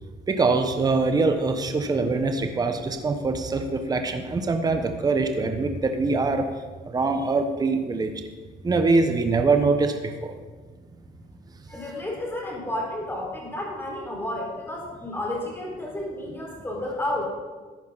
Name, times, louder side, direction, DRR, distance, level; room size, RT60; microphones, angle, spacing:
voice 1, 0.3-6.5 6.9-8.1 8.6-10.3, right 3 dB, 25° right, 6 dB, 1.0 m, -23 dB
voice 2, 11.7-17.3, left 1 dB, 15° left, -2 dB, 4.4 m, -31 dB
14.0 x 10.0 x 4.0 m, 1.4 s
cardioid pair, 110°, 17 cm